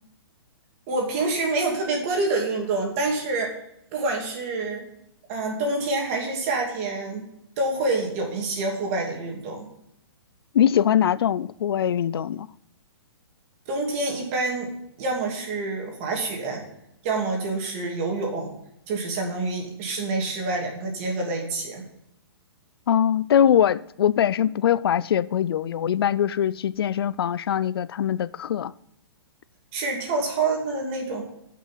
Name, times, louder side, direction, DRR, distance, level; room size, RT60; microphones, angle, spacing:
voice 1, 0.9-3.5 3.9-4.9 5.3-7.2 7.6-9.7 13.7-14.7 15.0-16.6 17.0-18.5 18.9-21.8 29.7-31.2, right 3 dB, 30° right, 2.8 m, -27 dB
voice 2, 10.5-12.5 22.9-28.7, left 9 dB, 65° left, 0.4 m, -22 dB
11.0 x 6.2 x 5.6 m
hypercardioid pair, 165°, 13 cm